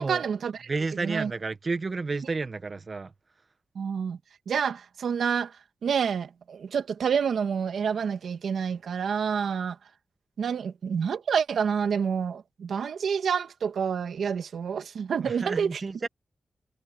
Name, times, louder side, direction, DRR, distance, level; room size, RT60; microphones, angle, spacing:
voice 1, 0.0-0.5 1.0-1.3 3.8-4.2 4.5-5.5 5.8-9.8 10.4-15.8, right 7 dB, 80° right, 1.8 m, -28 dB
voice 2, 0.7-3.1 15.2-16.1, right 3 dB, 40° right, 1.2 m, -31 dB
cardioid pair, 90°, 0 cm